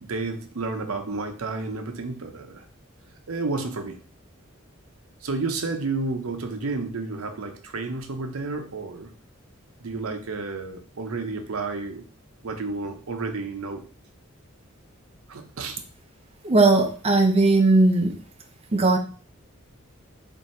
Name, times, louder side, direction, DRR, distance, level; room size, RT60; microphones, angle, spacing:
voice 1, 0.0-2.6 3.3-4.0 5.2-9.1 9.8-12.0 12.4-13.8 15.3-15.8, right 3 dB, 85° right, 5 dB, 0.7 m, -31 dB
voice 2, 16.4-18.1 18.7-19.0, right 2 dB, 30° right, 4 dB, 0.5 m, -18 dB
3.5 x 2.7 x 4.2 m, 0.41 s
head